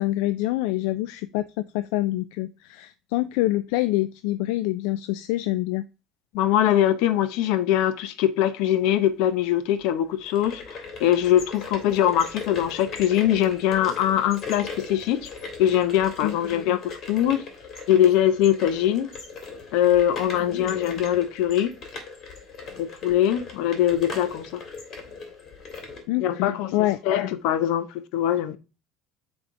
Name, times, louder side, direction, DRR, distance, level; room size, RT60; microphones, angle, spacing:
voice 1, 0.0-5.8 16.2-16.4 20.4-20.7 26.1-27.0, left 16 dB, 90° left, 0.3 m, -26 dB
voice 2, 6.3-15.3 15.6-17.4 17.9-19.1 19.7-21.7 22.8-24.6 26.2-27.9 28.1-28.6, left 11 dB, 70° left, 0.7 m, -22 dB
sound 1, 10.2-26.0, left 4 dB, 40° left, 2.1 m, -39 dB
8.0 x 3.6 x 3.7 m
cardioid pair, 165°, 0 cm